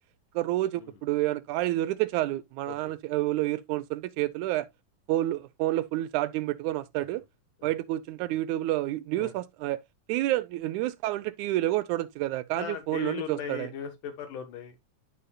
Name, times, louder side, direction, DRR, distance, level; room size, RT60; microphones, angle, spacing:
voice 1, 0.4-4.7 5.1-7.2 7.6-9.8 10.1-13.7, right 15 dB, 80° right, 1.9 m, -29 dB
voice 2, 12.6-14.8, left 7 dB, 85° left, 3.0 m, -38 dB
10.5 x 5.6 x 2.3 m
omnidirectional pair, 3.6 m